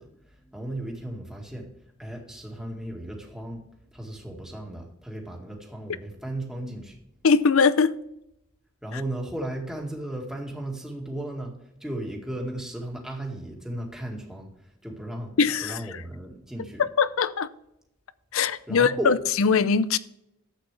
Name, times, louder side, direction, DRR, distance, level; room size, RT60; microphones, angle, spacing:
voice 1, 0.0-1.7 2.0-3.6 3.9-7.0 8.8-15.3 15.6-16.8 18.7-19.1, right 1 dB, 5° right, 2.0 m, -35 dB
voice 2, 7.2-7.9 15.4-15.8 16.8-17.5 18.3-20.0, left 5 dB, 70° left, 0.5 m, -21 dB
11.5 x 8.3 x 3.3 m
head